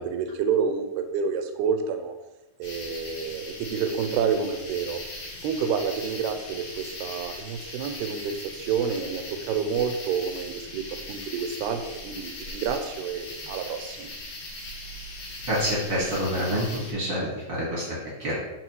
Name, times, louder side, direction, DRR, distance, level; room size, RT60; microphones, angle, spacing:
voice 1, 0.0-2.1 2.6-5.0 5.4-10.8 11.1-14.1, right 6 dB, 80° right, 7 dB, 2.5 m, -29 dB
sound 1, 2.6-16.9, left 2 dB, 60° left, 2.6 m, -39 dB
voice 2, 15.5-18.4, equal, 50° right, -6 dB, 1.4 m, -27 dB
12.0 x 4.0 x 3.1 m, 1.0 s
omnidirectional pair, 4.9 m